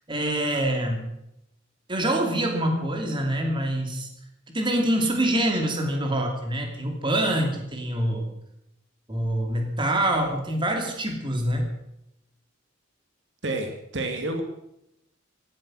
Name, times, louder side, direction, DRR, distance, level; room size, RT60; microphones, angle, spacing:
voice 1, 0.1-1.0 1.9-4.1 4.5-8.3 9.1-11.7, right 1 dB, 25° right, 3 dB, 2.8 m, -25 dB
voice 2, 13.4-14.4, right 2 dB, 60° right, 4 dB, 2.3 m, -29 dB
17.0 x 13.0 x 6.4 m, 0.82 s
head